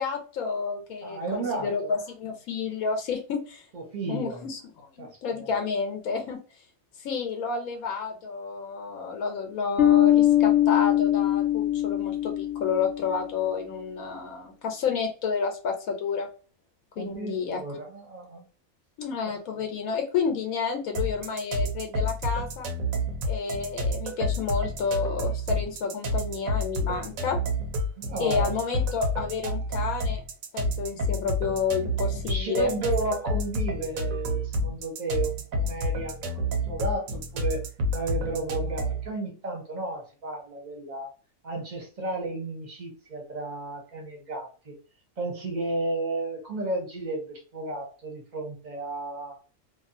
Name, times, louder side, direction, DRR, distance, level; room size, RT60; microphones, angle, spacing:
voice 1, 0.0-3.7 4.1-4.6 5.0-6.4 7.0-16.3 17.0-17.6 19.0-22.7 23.2-27.4 28.2-30.2 30.5-32.7, left 5 dB, 85° left, 4 dB, 1.1 m, -30 dB
voice 2, 1.0-1.9 3.7-4.4 5.0-5.5 17.0-18.5 19.5-19.6 28.0-28.6 32.0-37.6 37.9-41.1 41.4-44.8 45.2-49.4, right 2 dB, 35° right, 1 dB, 0.9 m, -33 dB
Bass guitar, 9.8-13.3, left 13 dB, 65° left, 0.8 m, -22 dB
sound 1, 20.9-39.1, equal, 75° right, 1.1 m, -29 dB
2.6 x 2.4 x 2.5 m, 0.36 s
omnidirectional pair, 1.5 m